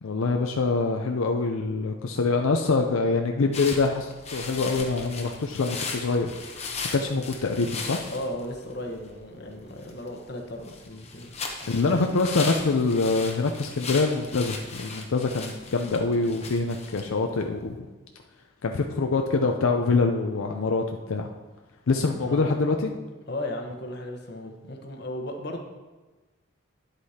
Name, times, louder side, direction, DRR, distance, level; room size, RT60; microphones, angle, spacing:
voice 1, 0.0-6.4 6.9-8.0 11.7-17.9 18.6-21.3 21.9-22.9, left 3 dB, 85° left, 3 dB, 0.5 m, -25 dB
sound 1, 3.5-17.8, left 4 dB, 30° left, 0.8 m, -38 dB
voice 2, 8.1-11.4 11.6-11.9 22.2-22.5 23.3-25.6, left 1 dB, 50° left, 2 dB, 1.0 m, -36 dB
10.5 x 8.0 x 2.8 m, 1.2 s
head